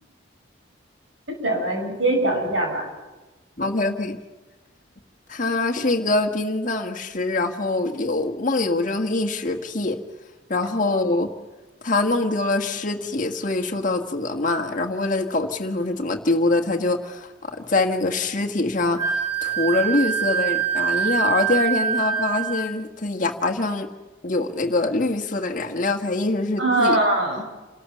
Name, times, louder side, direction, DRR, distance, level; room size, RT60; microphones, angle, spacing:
voice 1, 1.4-2.9 10.6-10.7 26.6-27.4, right 2 dB, 80° right, 2 dB, 6.0 m, -22 dB
voice 2, 3.6-4.2 5.3-10.0 10.5-11.3 11.8-23.9 24.2-27.0, left 2 dB, 45° left, 5 dB, 1.6 m, -24 dB
Wind instrument woodwind instrument, 19.0-22.7, right 8 dB, 35° right, 3.1 m, -24 dB
28.0 x 13.5 x 7.2 m, 1.2 s
head